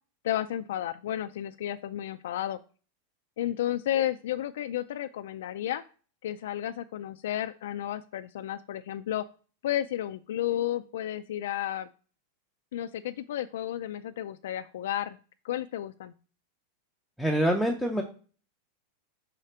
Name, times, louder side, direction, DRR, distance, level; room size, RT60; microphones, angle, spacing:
voice 1, 0.2-2.6 3.4-5.8 6.2-9.2 9.6-11.9 12.7-15.2 15.4-16.1, left 12 dB, 75° left, 9 dB, 0.3 m, -32 dB
voice 2, 17.2-18.0, equal, ahead, 1 dB, 0.5 m, -25 dB
5.8 x 5.0 x 4.3 m, 0.38 s
supercardioid pair, 170°, 0 cm